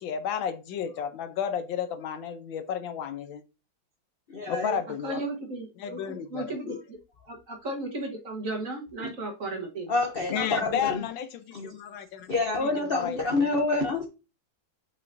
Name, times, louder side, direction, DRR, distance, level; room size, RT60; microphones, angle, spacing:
voice 1, 0.0-3.4 4.5-5.2 5.8-6.5 10.3-12.3 12.6-13.9, left 8 dB, 80° left, 1.5 m, -32 dB
voice 2, 4.3-4.8 6.7-6.8 9.0-9.1 9.9-11.0 11.5-11.7 12.3-14.1, left 3 dB, 55° left, 0.6 m, -28 dB
voice 3, 5.0-7.0 7.3-9.9, right 2 dB, 45° right, 1.5 m, -35 dB
7.8 x 5.5 x 2.6 m
omnidirectional pair, 2.1 m